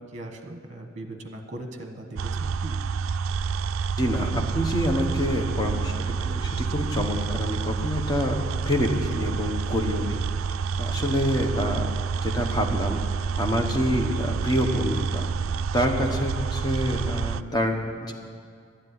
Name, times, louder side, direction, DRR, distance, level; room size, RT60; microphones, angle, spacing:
voice 1, 0.0-2.8, right 1 dB, 35° right, 5 dB, 1.3 m, -39 dB
sound 1, 2.2-17.4, right 5 dB, 75° right, 0.3 m, -28 dB
voice 2, 4.0-11.9 12.2-15.3 15.7-18.1, equal, 20° left, 2 dB, 1.2 m, -27 dB
11.5 x 7.6 x 9.7 m, 2.2 s
head